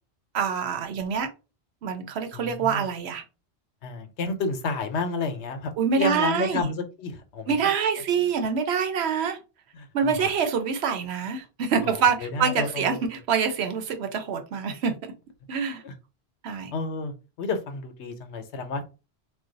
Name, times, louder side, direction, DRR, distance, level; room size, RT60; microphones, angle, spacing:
voice 1, 0.3-1.3 1.8-3.2 5.8-6.7 7.5-9.4 9.9-15.1 15.5-15.8 16.4-16.7, right 6 dB, 75° right, 0.9 m, -26 dB
voice 2, 2.3-2.9 3.8-7.6 9.7-10.3 11.8-11.9 12.2-13.1 15.8-15.9 16.7-18.8, left 3 dB, 85° left, 1.0 m, -31 dB
2.5 x 2.2 x 3.8 m
omnidirectional pair, 1.1 m